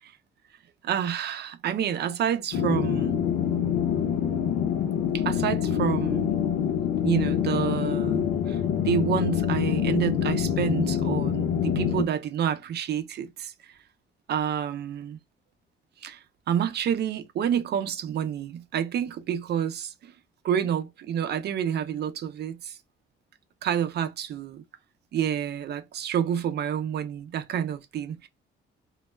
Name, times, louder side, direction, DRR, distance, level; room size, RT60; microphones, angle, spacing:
voice 1, 0.8-3.2 5.1-6.3 7.0-8.6 8.8-13.5 14.3-15.2 16.0-16.2 16.5-20.1 20.4-22.8 23.6-24.6 25.1-28.3, right 9 dB, 55° right, 0.4 m, -28 dB
sound 1, 2.5-12.1, left 9 dB, 90° left, 0.5 m, -26 dB
2.2 x 2.0 x 3.1 m
cardioid pair, 90°, 20 cm